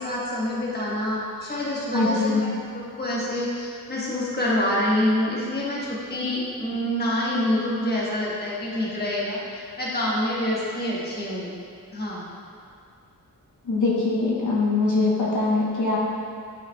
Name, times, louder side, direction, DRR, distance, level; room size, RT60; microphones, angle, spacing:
voice 1, 0.0-2.6 3.0-11.5 11.9-12.3, left 1 dB, 30° left, -6 dB, 1.2 m, -26 dB
voice 2, 1.9-2.4 13.6-16.0, left 3 dB, 55° left, -6 dB, 1.1 m, -22 dB
10.5 x 5.6 x 2.2 m, 2.3 s
wide cardioid pair, 175°, 35 cm